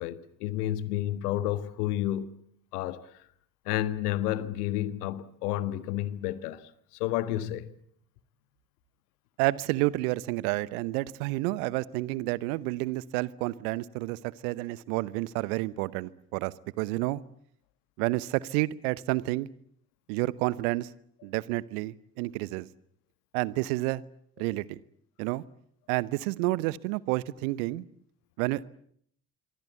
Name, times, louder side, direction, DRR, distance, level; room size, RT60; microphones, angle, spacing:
voice 1, 0.0-2.3 2.7-3.0 3.6-7.7, left 13 dB, 75° left, 1.5 m, -31 dB
voice 2, 9.4-17.2 18.0-19.5 20.1-20.9 21.2-22.7 23.3-24.0 24.4-24.8 25.2-25.4 25.9-27.8 28.4-28.6, right 19 dB, 70° right, 1.0 m, -30 dB
26.0 x 24.0 x 8.3 m
figure-of-eight pair, 50°, 46 cm